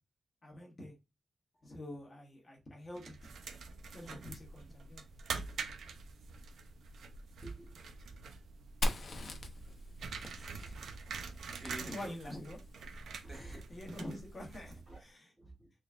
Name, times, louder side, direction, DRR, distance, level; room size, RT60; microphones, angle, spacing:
voice 1, 0.4-0.9 1.6-3.3 3.9-5.0 11.8-12.6 13.7-15.3, left 1 dB, 25° left, 1.0 m, -46 dB
Window Blinds Open Close, 2.9-15.0, right 4 dB, 80° right, 0.5 m, -46 dB
voice 2, 7.4-7.8 9.9-10.0 10.3-11.0 11.5-12.4 13.2-13.8 14.9-15.0 15.4-15.7, right 2 dB, 15° right, 1.2 m, -49 dB
Fire, 8.8-12.5, left 1 dB, 45° left, 0.6 m, -40 dB
3.9 x 3.4 x 2.4 m
wide cardioid pair, 175°, 0 cm